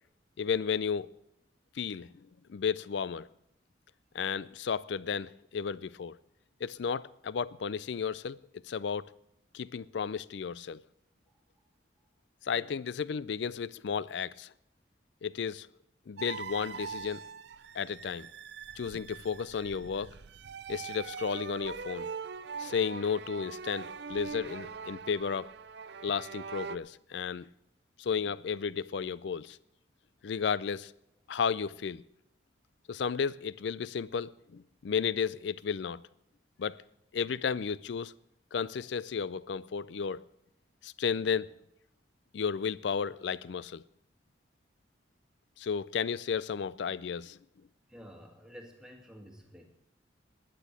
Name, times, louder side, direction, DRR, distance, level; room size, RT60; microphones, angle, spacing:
voice 1, 0.4-1.1 1.8-2.1 2.5-3.3 4.1-6.2 6.6-8.4 8.7-9.1 9.5-10.8 12.5-14.5 15.2-15.7 16.1-17.2 17.7-18.3 18.8-20.2 20.7-22.1 22.6-25.5 26.0-27.5 28.0-29.6 30.2-30.9 31.3-32.0 32.9-36.0 36.6-36.8 37.1-38.1 38.5-40.3 40.8-41.5 42.3-43.8 45.6-47.4, left 6 dB, 70° left, 0.4 m, -33 dB
sound 1, 16.2-26.8, right 5 dB, 65° right, 0.5 m, -42 dB
voice 2, 47.9-49.6, equal, 5° right, 1.8 m, -50 dB
12.0 x 9.2 x 7.4 m
head